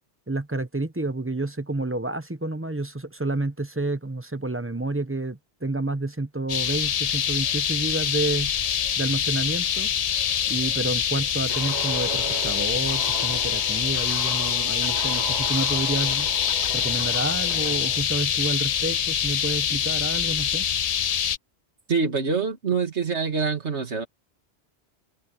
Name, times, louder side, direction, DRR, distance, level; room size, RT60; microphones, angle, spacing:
voice 1, 0.3-8.5 9.0-9.9 10.5-16.3 16.7-20.7, right 2 dB, 15° right, 0.9 m, -29 dB
sound 1, 6.5-21.4, left 8 dB, 50° left, 0.4 m, -25 dB
Guitar, 11.5-18.0, right 3 dB, 40° right, 2.8 m, -37 dB
voice 2, 21.9-24.0, right 5 dB, 80° right, 2.6 m, -25 dB
omnidirectional pair, 1.1 m